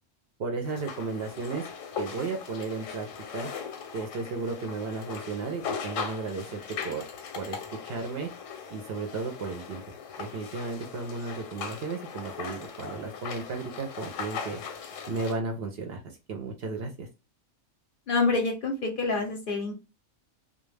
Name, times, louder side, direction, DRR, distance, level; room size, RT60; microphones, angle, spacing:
voice 1, 0.4-1.7 2.0-3.1 3.3-3.5 3.9-7.1 7.4-7.6 7.8-8.3 8.7-14.6 15.1-17.1, right 4 dB, 65° right, 4 dB, 0.7 m, -34 dB
sound 1, 0.6-15.3, left 6 dB, 85° left, 1.0 m, -39 dB
voice 2, 18.1-19.7, left 3 dB, 55° left, 2 dB, 0.6 m, -27 dB
2.2 x 2.1 x 3.1 m, 0.29 s
omnidirectional pair, 1.3 m